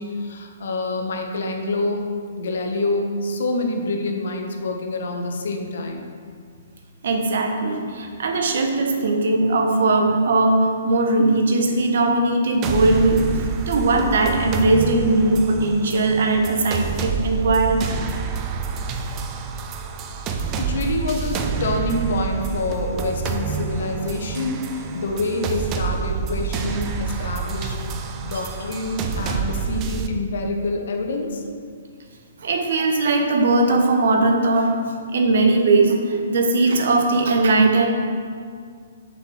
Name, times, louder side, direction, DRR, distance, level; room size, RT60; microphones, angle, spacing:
voice 1, 0.0-2.1 2.4-6.0 13.9-14.0 20.6-27.8 28.2-31.4, left 2 dB, 60° left, 3 dB, 1.1 m, -26 dB
voice 2, 7.0-13.3 13.7-17.8 32.4-34.7 35.1-37.9, right 2 dB, 55° right, 3 dB, 1.2 m, -19 dB
sound 1, 12.6-30.1, right 6 dB, 25° right, 0.6 m, -28 dB
6.6 x 5.9 x 6.1 m, 2.1 s
figure-of-eight pair, 120°, 0 cm